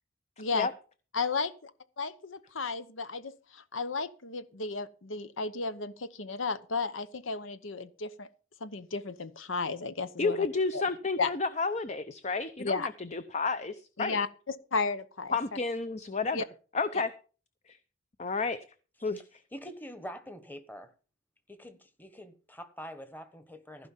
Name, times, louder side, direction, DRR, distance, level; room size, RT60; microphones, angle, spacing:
voice 1, 1.1-1.7 2.0-8.3 8.6-10.5 10.7-10.8 11.2-11.3 12.6-12.9 14.0-15.4 16.3-16.4, left 4 dB, 75° left, 0.9 m, -33 dB
voice 2, 10.2-14.2 15.3-16.4 16.7-17.1 17.7-17.8 18.2-18.6 19.0-19.4, left 4 dB, 35° left, 0.6 m, -31 dB
voice 3, 19.5-20.9 21.5-23.9, equal, 10° left, 1.3 m, -45 dB
15.5 x 5.4 x 7.3 m
head